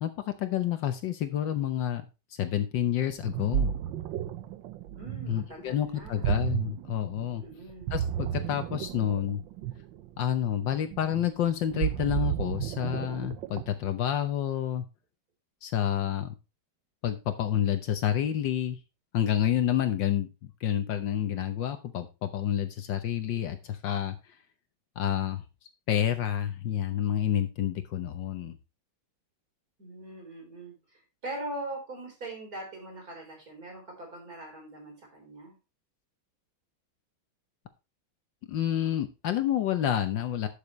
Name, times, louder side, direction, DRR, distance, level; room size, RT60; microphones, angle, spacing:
voice 1, 0.0-2.0 2.4-3.7 5.3-7.4 7.9-9.4 10.2-14.8 15.6-16.3 17.0-18.8 19.1-24.1 25.0-25.4 25.9-28.6 38.5-40.5, left 10 dB, 70° left, 9 dB, 1.5 m, -29 dB
Ocean, 3.1-13.9, right 10 dB, 75° right, 1.4 m, -33 dB
voice 2, 4.9-6.3 7.4-7.9 29.8-35.5, right 1 dB, 45° right, 1 dB, 4.3 m, -41 dB
12.0 x 6.8 x 3.1 m, 0.27 s
omnidirectional pair, 2.2 m